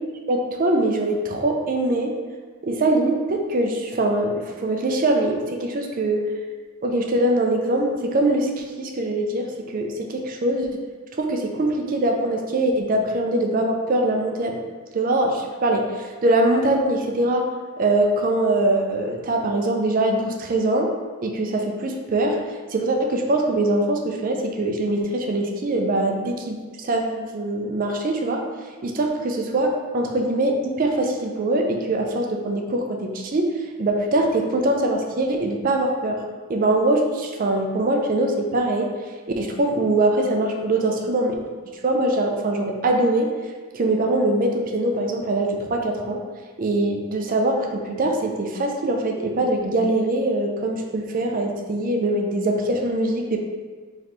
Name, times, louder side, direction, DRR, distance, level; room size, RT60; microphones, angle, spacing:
voice 1, 0.3-2.1 2.6-6.2 6.8-10.8 11.2-14.6 14.9-17.5 17.8-20.9 21.2-22.4 22.7-28.4 28.8-33.5 33.8-36.2 36.5-38.9 39.4-41.3 41.8-43.3 43.7-46.2 46.6-53.4, right 2 dB, 40° right, 2 dB, 0.4 m, -22 dB
3.2 x 3.0 x 4.0 m, 1.5 s
head